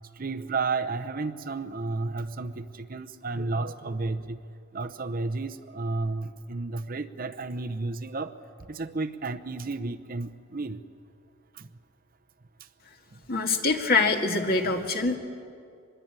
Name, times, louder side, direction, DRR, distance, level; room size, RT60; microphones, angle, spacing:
voice 1, 0.2-4.4 4.7-8.3 8.7-10.8 11.6-11.7, right 3 dB, 45° right, 8 dB, 0.8 m, -32 dB
voice 2, 13.3-15.2, left 3 dB, 50° left, 3 dB, 2.0 m, -24 dB
24.5 x 21.5 x 8.9 m, 2.3 s
head